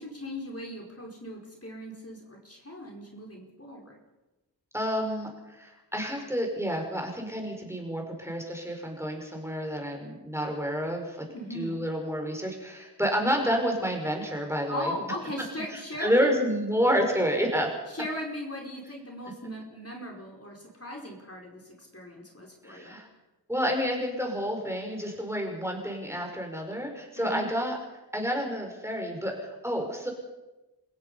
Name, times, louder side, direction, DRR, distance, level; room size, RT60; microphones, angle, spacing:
voice 1, 0.0-4.0 11.3-11.8 14.7-16.4 17.9-23.0 27.2-27.5, left 1 dB, 35° left, -1 dB, 5.0 m, -38 dB
voice 2, 4.7-11.3 11.5-14.9 15.7-17.8 22.6-23.1 23.5-27.8 28.1-30.1, equal, 5° right, 1 dB, 5.3 m, -29 dB
29.0 x 16.0 x 5.6 m, 1.1 s
wide cardioid pair, 50°, 41 cm